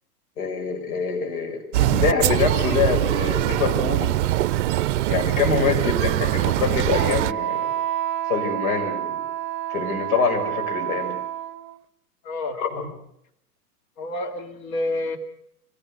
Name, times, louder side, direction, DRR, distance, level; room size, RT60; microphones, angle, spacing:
voice 1, 0.4-4.2 5.1-7.7 8.3-9.2 9.7-11.2 12.6-12.9, left 5 dB, 60° left, 3 dB, 7.1 m, -25 dB
sound 1, 1.7-7.3, right 14 dB, 50° right, 0.7 m, -22 dB
Wind instrument woodwind instrument, 5.6-11.8, right 11 dB, 35° right, 1.1 m, -30 dB
voice 2, 12.2-12.6 14.0-15.2, left 2 dB, 35° left, 6 dB, 2.5 m, -28 dB
25.0 x 18.0 x 6.7 m, 0.74 s
hypercardioid pair, 110°, 48 cm